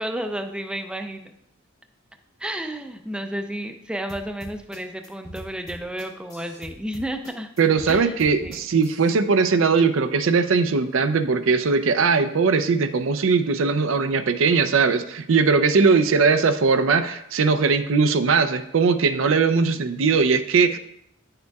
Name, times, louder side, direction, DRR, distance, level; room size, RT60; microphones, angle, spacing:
voice 1, 0.0-1.3 2.4-7.5 7.9-8.2 8.4-8.6, right 1 dB, 5° right, 6 dB, 0.4 m, -32 dB
sound 1, 4.1-9.1, left 1 dB, 20° left, 1.0 m, -42 dB
voice 2, 7.6-20.8, right 5 dB, 85° right, 8 dB, 0.5 m, -20 dB
9.5 x 6.6 x 2.3 m, 0.76 s
head